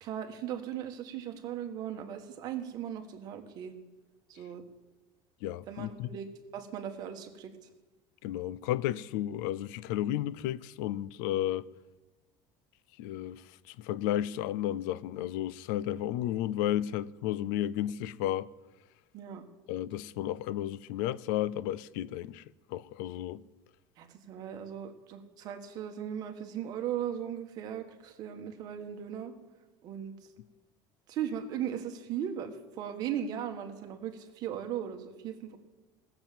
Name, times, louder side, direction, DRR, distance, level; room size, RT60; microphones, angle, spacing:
voice 1, 0.0-3.7 4.3-4.6 5.7-7.7 19.1-19.4 24.0-29.4 29.8-30.1 31.1-35.6, right 9 dB, 40° right, 1.3 m, -38 dB
voice 2, 5.4-6.1 8.2-11.7 13.0-18.5 19.7-22.4 22.7-23.4, left 12 dB, 75° left, 0.5 m, -33 dB
17.5 x 7.0 x 7.5 m
cardioid pair, 170°, 10 cm